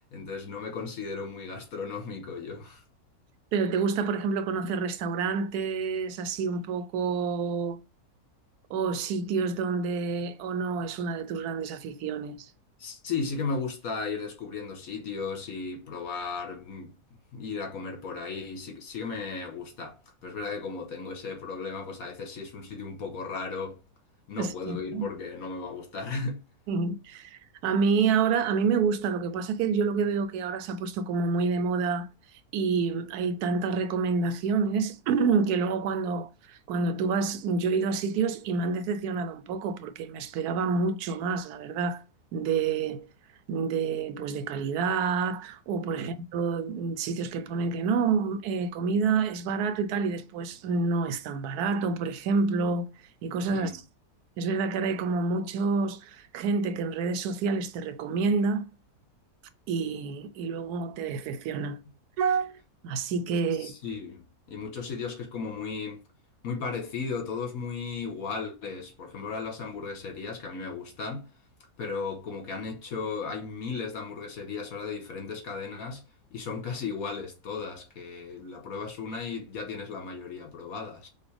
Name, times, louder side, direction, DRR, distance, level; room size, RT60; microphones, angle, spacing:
voice 1, 0.1-2.8 12.8-16.9 17.3-20.0 20.2-23.8 24.3-26.4 46.0-46.2 53.5-53.8 63.6-66.0 66.4-71.3 71.8-76.0 76.3-81.1, left 4 dB, 65° left, 1.6 m, -35 dB
voice 2, 3.5-7.8 8.7-12.5 24.4-25.0 26.7-32.1 32.5-42.0 42.3-43.1 43.5-52.9 53.2-53.8 54.4-58.7 59.7-61.8 62.2-62.5 62.8-63.7, right 5 dB, 85° right, 1.1 m, -28 dB
5.5 x 2.5 x 3.3 m
omnidirectional pair, 1.6 m